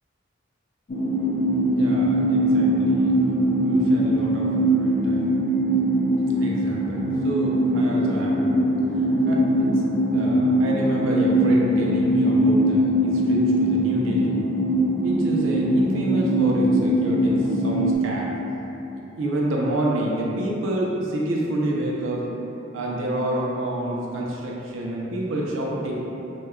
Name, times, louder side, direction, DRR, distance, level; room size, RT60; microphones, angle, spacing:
sound 1, 0.9-18.0, right 1 dB, 40° left, 0.4 m, -21 dB
voice 1, 1.8-3.1 3.6-5.4 6.4-8.6 9.0-9.7 10.1-14.4 15.0-18.3 19.2-22.3 22.7-25.9, right 1 dB, 75° right, -3 dB, 0.5 m, -28 dB
2.2 x 2.2 x 3.5 m, 3.0 s
head